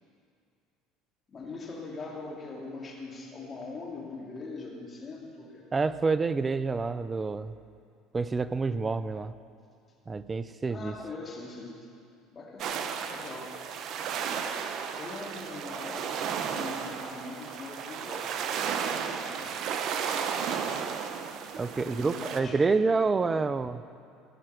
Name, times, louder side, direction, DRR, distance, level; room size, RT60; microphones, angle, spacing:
voice 1, 1.3-5.6 10.6-11.9 12.3-13.5 15.0-19.5 21.6-22.6 23.2-23.5, left 3 dB, 35° left, -2 dB, 2.4 m, -42 dB
voice 2, 5.7-7.5 8.1-9.3 10.1-10.9 21.6-23.8, right 4 dB, 25° right, 14 dB, 0.4 m, -28 dB
sound 1, 12.6-22.4, right 7 dB, 55° right, 0.7 m, -34 dB
15.5 x 5.6 x 6.3 m, 2.4 s
supercardioid pair, 85°, 0 cm